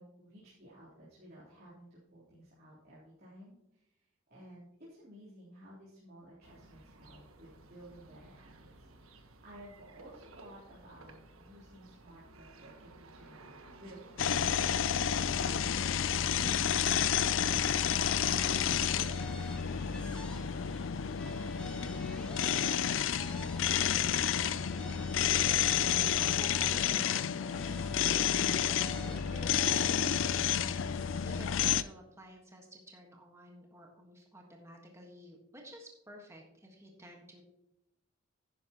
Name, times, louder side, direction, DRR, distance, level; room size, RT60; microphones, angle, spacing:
voice 1, 0.0-8.7 9.0-14.5 15.0-20.5, right 1 dB, 50° right, -10 dB, 3.6 m, -55 dB
sound 1, 6.4-23.6, right 2 dB, 90° right, 1.3 m, -57 dB
sound 2, 14.2-31.8, left 8 dB, 65° left, 0.4 m, -30 dB
sound 3, 17.9-20.8 21.1-24.0 24.3-27.2 27.5-30.4, equal, 5° left, 1.6 m, -50 dB
voice 2, 25.7-30.5 31.2-37.4, equal, 15° right, 1 dB, 1.5 m, -52 dB
11.0 x 10.0 x 3.0 m, 0.88 s
head